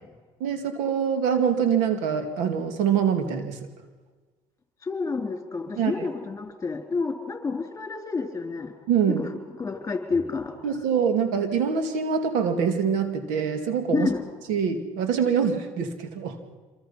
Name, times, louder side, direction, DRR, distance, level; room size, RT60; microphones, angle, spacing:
voice 1, 0.4-3.7 5.8-6.1 8.9-9.3 10.6-14.1 14.5-16.4, right 7 dB, 85° right, 8 dB, 2.4 m, -24 dB
voice 2, 4.8-8.7 9.1-9.3 9.6-10.6 13.9-14.2, left 4 dB, 20° left, 5 dB, 4.1 m, -29 dB
26.0 x 23.0 x 5.8 m, 1.4 s
cardioid pair, 100°, 13 cm